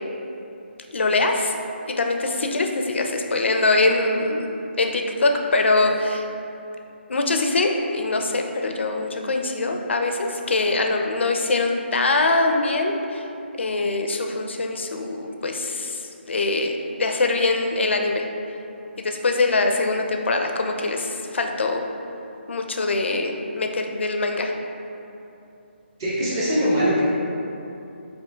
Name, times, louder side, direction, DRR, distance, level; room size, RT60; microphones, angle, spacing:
voice 1, 0.9-1.5 2.0-4.5 4.8-6.3 7.1-13.2 13.6-16.0 16.3-18.2 19.0-21.8 22.5-24.5, left 3 dB, 70° left, 3 dB, 0.5 m, -23 dB
voice 2, 26.0-27.0, equal, 20° right, -8 dB, 0.8 m, -21 dB
8.0 x 2.8 x 2.2 m, 2.9 s
hypercardioid pair, 175°, 6 cm